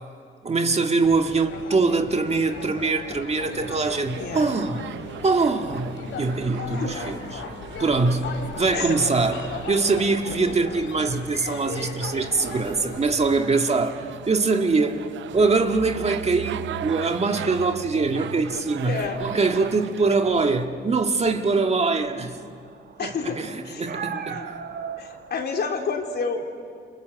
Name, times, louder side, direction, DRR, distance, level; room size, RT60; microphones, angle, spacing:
voice 1, 0.4-4.8 5.2-7.4 7.8-9.4 9.7-15.1 15.3-22.4 23.0-24.4, right 3 dB, 30° right, 5 dB, 1.8 m, -23 dB
sound 1, 1.0-13.4, left 5 dB, 80° left, 3.2 m, -38 dB
sound 2, 3.4-20.7, right 11 dB, 70° right, 0.7 m, -39 dB
voice 2, 4.2-4.5 6.7-6.9 8.7-8.9 18.8-19.2 23.0-23.4 23.6-24.5 25.0-26.4, left 5 dB, 55° left, 3 dB, 3.5 m, -30 dB
sound 3, 13.0-25.4, right 7 dB, 55° right, 1.7 m, -42 dB
28.5 x 26.0 x 7.8 m, 2.4 s
cardioid pair, 90°, 20 cm